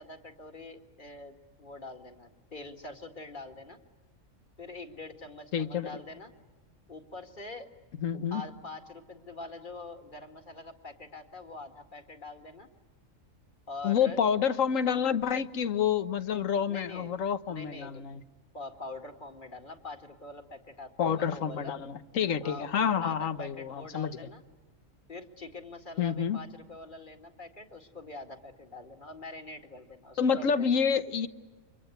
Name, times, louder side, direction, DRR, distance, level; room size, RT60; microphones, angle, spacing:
voice 1, 0.0-3.8 4.6-6.3 6.9-7.7 8.3-12.7 13.7-14.2 16.7-17.2 17.5-18.0 18.5-21.7 22.4-22.7 23.0-24.4 25.1-30.7, left 2 dB, 40° left, 4 dB, 2.2 m, -44 dB
voice 2, 5.5-5.9 8.0-8.4 13.8-18.2 21.0-24.2 26.0-26.4 30.2-31.3, left 7 dB, 80° left, 12 dB, 1.5 m, -28 dB
29.0 x 25.0 x 8.0 m, 1.3 s
omnidirectional pair, 1.4 m